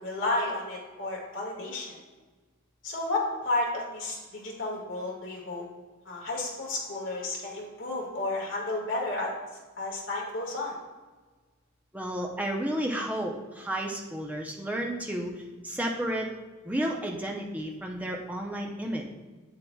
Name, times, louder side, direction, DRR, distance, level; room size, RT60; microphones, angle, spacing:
voice 1, 0.0-2.0 2.8-5.6 6.0-9.3 9.8-10.7, left 2 dB, 60° left, -3 dB, 1.8 m, -32 dB
voice 2, 11.9-16.3 16.6-19.1, right 1 dB, 5° right, 0 dB, 0.6 m, -32 dB
7.6 x 7.1 x 2.3 m, 1.3 s
head